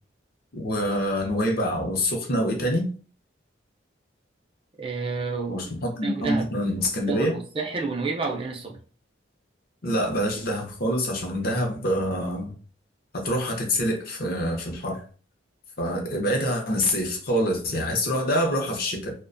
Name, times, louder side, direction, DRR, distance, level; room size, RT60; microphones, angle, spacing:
voice 1, 0.5-2.9 5.5-7.3 9.8-12.5 13.1-15.0 15.8-19.1, equal, 50° left, 0.7 m, -26 dB
voice 2, 4.8-5.7 6.0-6.5 7.1-8.8, right 4 dB, 30° right, 0.4 m, -29 dB
2.4 x 2.1 x 2.5 m
head